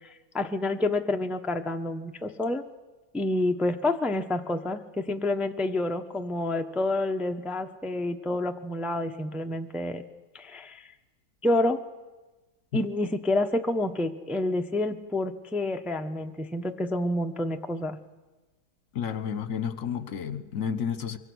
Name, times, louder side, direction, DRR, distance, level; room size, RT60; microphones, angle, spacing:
voice 1, 0.0-2.6 3.1-10.0 10.3-10.9 11.4-11.8 12.7-18.0, left 2 dB, ahead, 5 dB, 0.5 m, -28 dB
voice 2, 18.9-21.2, left 7 dB, 55° left, 12 dB, 1.5 m, -31 dB
24.5 x 23.5 x 6.3 m, 1.2 s
omnidirectional pair, 1.8 m